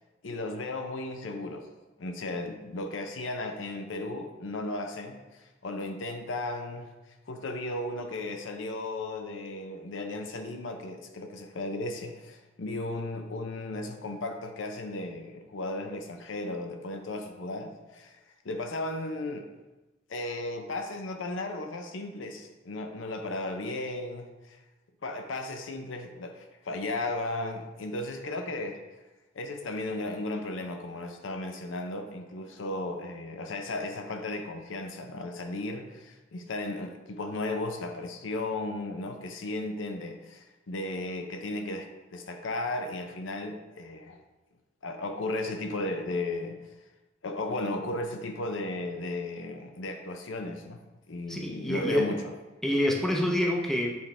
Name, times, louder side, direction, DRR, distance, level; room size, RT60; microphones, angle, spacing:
voice 1, 0.2-1.7 2.0-6.9 7.3-18.2 18.4-19.5 20.1-24.6 25.0-28.8 29.3-41.9 42.1-44.2 44.8-46.6 47.2-50.8 51.1-52.3, left 2 dB, 85° left, 5 dB, 0.6 m, -35 dB
voice 2, 51.3-52.0 52.6-54.0, left 1 dB, ahead, -1 dB, 0.6 m, -27 dB
7.9 x 3.5 x 3.3 m, 1.1 s
head